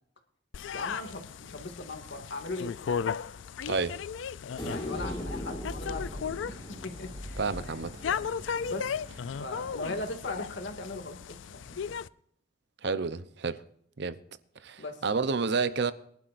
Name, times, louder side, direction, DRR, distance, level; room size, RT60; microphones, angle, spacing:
sound 1, 0.5-12.1, left 6 dB, 85° left, 0.4 m, -36 dB
voice 1, 0.7-3.0 4.6-8.2 8.6-8.9 9.3-11.9 14.8-15.0, left 2 dB, 70° left, 2.3 m, -39 dB
voice 2, 3.7-4.0 7.4-7.9 12.8-13.6 14.0-14.2 14.6-15.9, right 4 dB, 65° right, 0.8 m, -30 dB
sound 2, 4.6-7.8 10.4-10.5, left 1 dB, 30° left, 2.3 m, -39 dB
sound 3, 4.9-10.3, equal, 30° right, 2.9 m, -43 dB
23.0 x 11.5 x 2.6 m
head